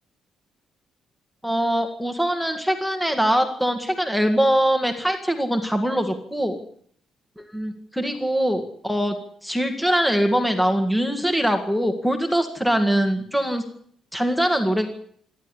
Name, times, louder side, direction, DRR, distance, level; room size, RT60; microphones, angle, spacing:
voice 1, 1.4-6.6 7.4-9.2 9.4-13.6 14.1-14.9, equal, ahead, 5 dB, 2.0 m, -22 dB
27.5 x 11.5 x 10.0 m, 0.63 s
cardioid pair, 175°, 0 cm